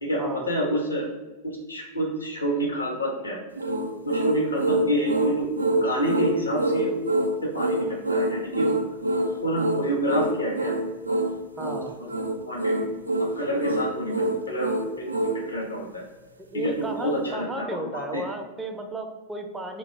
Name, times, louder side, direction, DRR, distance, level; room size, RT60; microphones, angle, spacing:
voice 1, 0.0-1.1 1.7-3.4 4.0-6.9 7.4-8.7 9.4-10.8 12.5-12.8 13.4-16.0 16.5-16.7 17.0-18.3, equal, 75° left, -1 dB, 0.7 m, -28 dB
sound 1, 3.6-15.4, right 1 dB, 80° right, 0.3 m, -26 dB
voice 2, 11.6-11.9 16.5-19.8, right 1 dB, 10° right, 3 dB, 0.5 m, -34 dB
2.8 x 2.2 x 3.9 m, 1.2 s
figure-of-eight pair, 90°, 0 cm